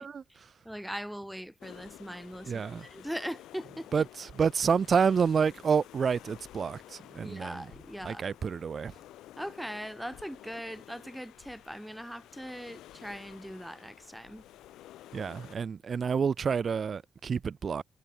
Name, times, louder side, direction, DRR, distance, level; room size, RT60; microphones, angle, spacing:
voice 1, 0.0-0.5 2.4-2.9 3.9-7.6 8.0-8.9 15.1-17.8, right 6 dB, 45° right, 3.0 m, -29 dB
voice 2, 0.6-3.9 7.2-8.3 9.4-14.4, equal, ahead, 5.3 m, -40 dB
sound 1, 1.6-15.6, left 14 dB, 85° left, 6.5 m, -52 dB
cardioid pair, 80°, 0 cm